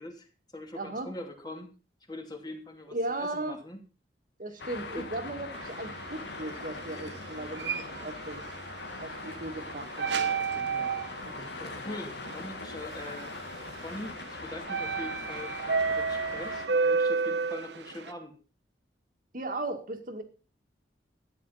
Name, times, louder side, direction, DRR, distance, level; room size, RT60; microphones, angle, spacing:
voice 1, 0.0-1.7 2.1-3.8 4.9-5.1 11.6-13.4 13.8-18.4, left 1 dB, 25° left, 4 dB, 2.6 m, -42 dB
voice 2, 0.7-1.1 2.9-3.6 4.4-8.4 9.0-10.9 11.2-11.3 19.3-20.2, right 2 dB, 50° right, 6 dB, 1.9 m, -37 dB
Traffic noise roadway noise, 4.6-16.7, left 3 dB, 65° left, 1.9 m, -41 dB
sound 1, 5.5-18.1, right 5 dB, 70° right, 1.1 m, -33 dB
13.5 x 9.7 x 5.6 m, 0.35 s
head